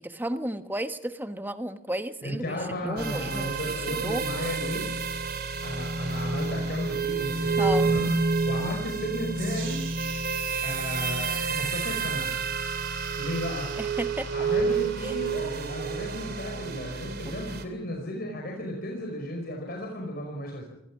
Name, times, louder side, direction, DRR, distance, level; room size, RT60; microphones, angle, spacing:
voice 1, 0.0-4.2 7.6-7.9 13.8-14.3 15.0-15.2, right 1 dB, 10° right, 9 dB, 1.1 m, -33 dB
voice 2, 2.2-4.9 5.6-8.1 8.4-9.8 10.6-12.3 13.2-13.7 14.3-20.6, left 1 dB, 50° left, 1 dB, 5.2 m, -34 dB
sound 1, 3.0-17.6, right 4 dB, 50° right, 2.7 m, -29 dB
sound 2, 9.4-17.4, right 7 dB, 65° right, 3.1 m, -43 dB
27.0 x 20.5 x 6.2 m, 0.84 s
head